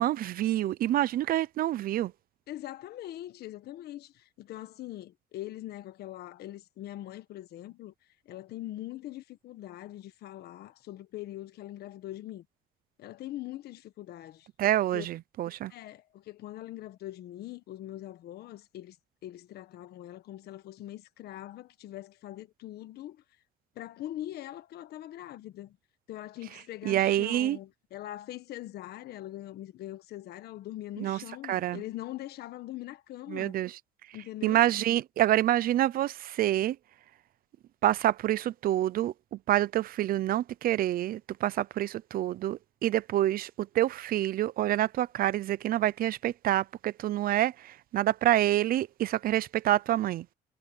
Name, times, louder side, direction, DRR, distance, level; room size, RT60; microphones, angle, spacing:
voice 1, 0.0-2.1 14.6-15.7 26.8-27.6 31.0-31.2 31.5-31.8 33.3-33.8 34.4-36.8 37.8-50.3, right 13 dB, 60° right, 0.6 m, -27 dB
voice 2, 2.5-7.9 8.2-12.4 13.0-14.5 14.9-15.0 15.7-19.0 19.2-23.2 23.7-25.8 26.1-33.6 34.1-34.6, left 14 dB, 70° left, 1.5 m, -42 dB
cardioid pair, 110°, 17 cm